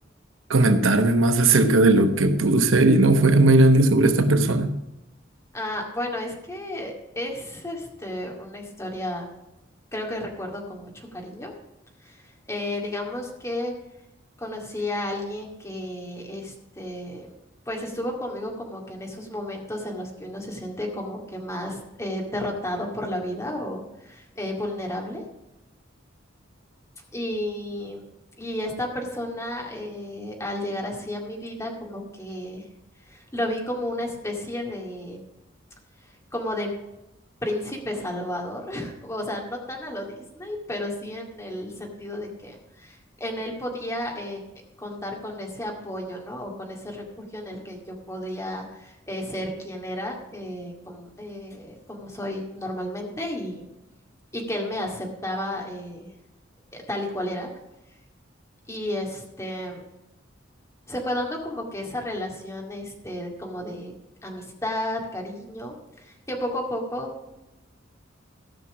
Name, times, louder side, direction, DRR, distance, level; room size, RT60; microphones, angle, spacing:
voice 1, 0.5-4.7, right 2 dB, 90° right, 8 dB, 1.0 m, -17 dB
voice 2, 5.5-9.3 9.9-11.5 12.0-13.7 14.4-17.3 17.7-25.2 27.1-28.0 28.4-32.6 33.0-35.2 36.0-36.7 37.4-44.4 44.8-53.7 54.3-56.1 56.7-57.5 58.7-59.8 60.9-63.9 64.2-67.1, left 1 dB, 15° left, 0 dB, 2.2 m, -32 dB
14.5 x 6.1 x 6.2 m, 0.91 s
head